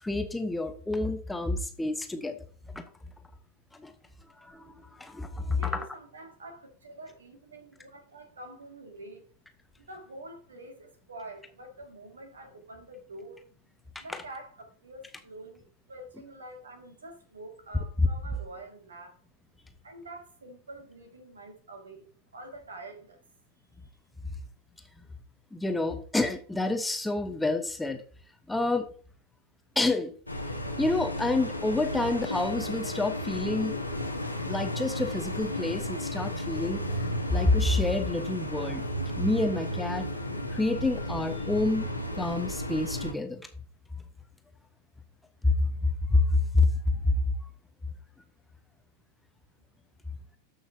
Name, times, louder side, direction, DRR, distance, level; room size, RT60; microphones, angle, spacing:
voice 1, 0.0-2.4 2.7-2.8 3.7-3.9 4.4-5.8 13.9-14.2 18.0-18.1 25.5-28.0 28.5-28.9 29.8-30.1 30.8-33.8 34.5-36.8 37.3-38.8 39.2-40.1 40.5-41.9 42.2-43.5 45.4-45.5 46.1-46.7 47.0-47.1, left 2 dB, 5° left, 0.9 m, -28 dB
voice 2, 5.5-9.2 9.9-13.4 14.0-19.2 19.8-22.1 22.3-23.2, right 2 dB, 70° right, 2.1 m, -46 dB
sound 1, 30.3-43.1, left 1 dB, 85° left, 1.3 m, -33 dB
13.5 x 5.6 x 2.7 m
figure-of-eight pair, 90°, 0 cm